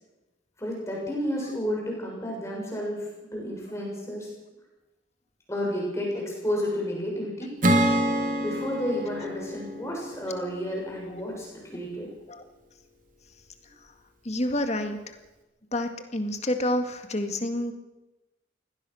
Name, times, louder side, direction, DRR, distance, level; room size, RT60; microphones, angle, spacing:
voice 1, 0.6-4.3 5.5-7.5 8.4-12.1, equal, 15° left, -2 dB, 6.8 m, -31 dB
Acoustic guitar / Strum, 7.6-11.1, right 1 dB, 40° right, 2.8 m, -27 dB
voice 2, 14.2-15.2 15.7-17.7, left 1 dB, 35° left, 6 dB, 2.0 m, -29 dB
23.5 x 17.5 x 6.4 m, 1.0 s
head